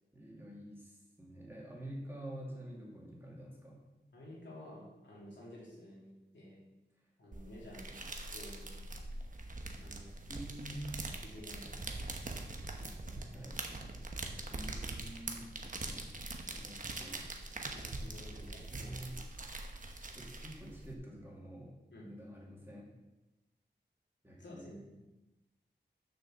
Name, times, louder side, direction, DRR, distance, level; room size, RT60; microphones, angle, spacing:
voice 1, 0.1-3.8 7.7-8.1 10.3-10.9 13.3-13.6 14.5-15.4 15.8-17.3 18.3-18.4 18.7-19.5 20.1-21.8 22.0-22.9 24.2-24.8, right 1 dB, 10° right, -4 dB, 2.5 m, -48 dB
voice 2, 4.1-6.6 7.2-7.9 8.3-8.7 9.8-10.2 11.2-11.8 12.8-13.5 17.7-18.9 21.9-22.1 24.4-25.0, left 1 dB, 80° left, -5 dB, 3.0 m, -52 dB
sound 1, 7.3-20.9, right 2 dB, 45° right, 1.1 m, -43 dB
6.8 x 6.7 x 6.4 m, 1.0 s
wide cardioid pair, 105°, 18 cm